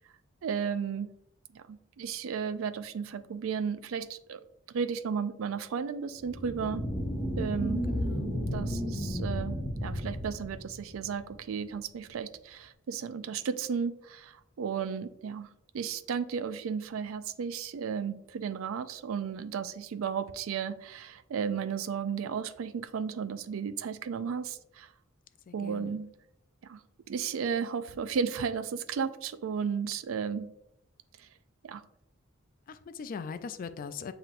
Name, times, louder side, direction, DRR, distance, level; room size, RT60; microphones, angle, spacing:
voice 1, 0.4-1.1 1.5-4.4 4.7-6.8 7.4-7.8 8.5-15.5 15.7-24.9 25.5-26.1 26.7-26.8 27.1-30.5 31.6-31.8, right 6 dB, 85° right, 11 dB, 0.4 m, -34 dB
sound 1, 6.2-11.2, equal, 25° left, 1.3 m, -33 dB
voice 2, 7.9-8.4 25.5-26.0 32.7-34.1, left 5 dB, 45° left, 11 dB, 0.3 m, -41 dB
7.4 x 2.8 x 2.5 m, 0.79 s
head